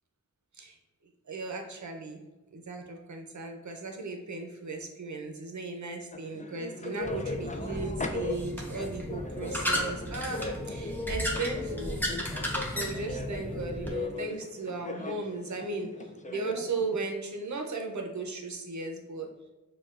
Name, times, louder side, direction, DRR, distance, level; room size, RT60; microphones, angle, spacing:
voice 1, 1.3-2.2 2.5-12.0 12.4-15.9 16.3-19.3, right 3 dB, 60° right, 3 dB, 0.6 m, -36 dB
sound 1, 6.1-17.1, left 3 dB, 25° left, 0.4 m, -39 dB
sound 2, 7.0-13.9, left 1 dB, 5° left, 0.8 m, -34 dB
6.5 x 2.3 x 2.4 m, 1.1 s
wide cardioid pair, 60°, 33 cm